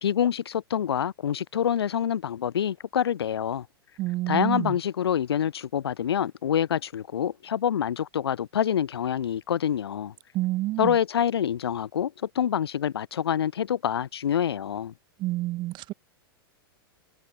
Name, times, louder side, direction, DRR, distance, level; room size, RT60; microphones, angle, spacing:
voice 1, 0.0-3.7 4.3-10.1 10.8-14.9, left 9 dB, 85° left, 2.5 m, -26 dB
voice 2, 4.0-4.7 10.3-10.9 15.2-15.9, right 18 dB, 35° right, 0.7 m, -28 dB
hypercardioid pair, 120°, 13 cm